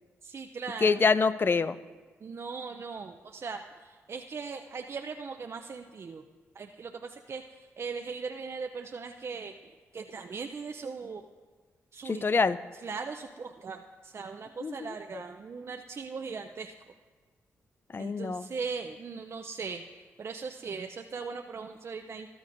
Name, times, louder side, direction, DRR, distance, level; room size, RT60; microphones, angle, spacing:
voice 1, 0.2-1.0 2.2-6.2 6.6-7.4 7.8-9.5 9.9-11.2 11.9-12.2 12.8-13.8 14.0-16.7 18.0-19.8 20.2-22.3, right 5 dB, 50° right, 5 dB, 0.5 m, -39 dB
voice 2, 0.8-1.8 12.0-12.6 14.6-15.2 17.9-18.5, left 4 dB, 40° left, 15 dB, 0.4 m, -26 dB
13.5 x 12.0 x 2.6 m, 1.4 s
supercardioid pair, 55°, 6 cm